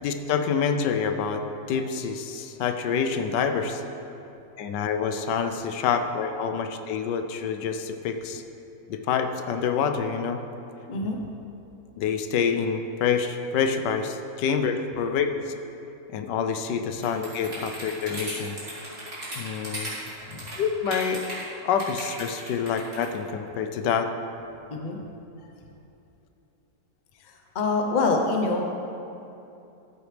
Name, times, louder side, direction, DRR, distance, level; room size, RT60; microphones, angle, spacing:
voice 1, 0.0-3.8 4.6-8.4 8.9-10.4 12.0-15.5 16.1-18.6 19.4-19.9 20.6-21.2 21.6-24.1, left 6 dB, 85° left, 6 dB, 1.3 m, -27 dB
voice 2, 10.9-11.3 20.3-20.4 24.7-25.0 27.2-28.8, left 3 dB, 40° left, 2 dB, 0.6 m, -26 dB
sound 1, 17.0-21.4 21.8-23.1, right 1 dB, 35° right, 2.8 m, -36 dB
13.0 x 8.0 x 3.3 m, 2.8 s
omnidirectional pair, 1.8 m